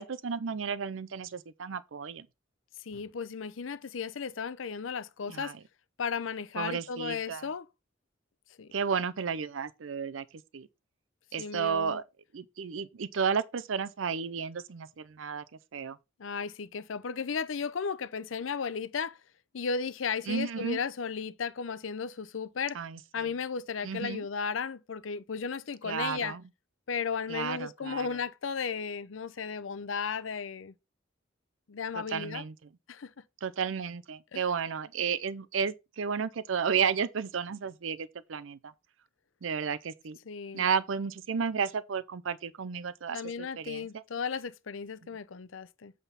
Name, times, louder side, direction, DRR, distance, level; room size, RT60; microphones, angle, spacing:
voice 1, 0.0-2.3 5.3-5.6 6.6-7.5 8.7-10.2 10.5-10.7 11.3-12.0 12.3-15.4 15.7-16.0 20.3-20.8 22.7-23.3 23.8-24.2 25.8-26.4 27.3-28.1 32.0-32.5 33.4-38.7 39.4-40.2 40.5-44.0, right 6 dB, 85° right, 0.5 m, -32 dB
voice 2, 2.8-5.6 6.0-7.7 8.6-8.7 11.4-12.0 16.2-19.2 19.5-22.8 23.1-26.3 26.9-30.7 31.7-32.4 32.9-33.1 34.3-34.4 40.3-40.7 43.1-45.9, left 6 dB, 90° left, 0.6 m, -35 dB
8.2 x 3.6 x 5.6 m
head